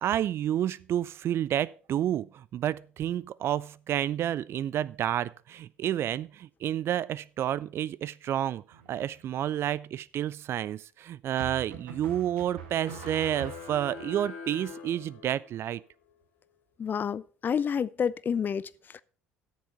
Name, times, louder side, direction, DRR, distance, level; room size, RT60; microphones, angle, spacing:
voice 1, 0.0-8.6 8.9-15.8, right 11 dB, 45° right, 0.4 m, -30 dB
sound 1, 8.7-9.3 11.4-14.0, right 8 dB, 75° right, 1.8 m, -43 dB
sound 2, 12.7-15.6, left 5 dB, 75° left, 2.5 m, -44 dB
voice 2, 16.8-19.0, left 7 dB, 35° left, 0.5 m, -29 dB
12.5 x 7.0 x 4.5 m
figure-of-eight pair, 55°, 6 cm